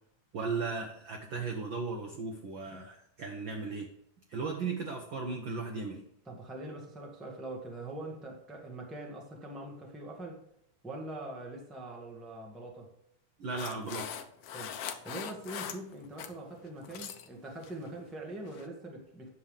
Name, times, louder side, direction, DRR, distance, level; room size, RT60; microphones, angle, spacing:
voice 1, 0.3-3.9 4.3-6.0 13.4-14.2, right 4 dB, 70° right, 3 dB, 1.1 m, -36 dB
voice 2, 6.3-10.4 10.8-12.9 14.5-14.8 15.0-19.3, right 2 dB, ahead, 0 dB, 0.7 m, -43 dB
sound 1, 13.6-16.3 16.7-17.3 17.6-17.9 18.5-18.7, left 8 dB, 75° left, 1.5 m, -41 dB
9.6 x 7.3 x 3.4 m, 0.71 s
omnidirectional pair, 3.5 m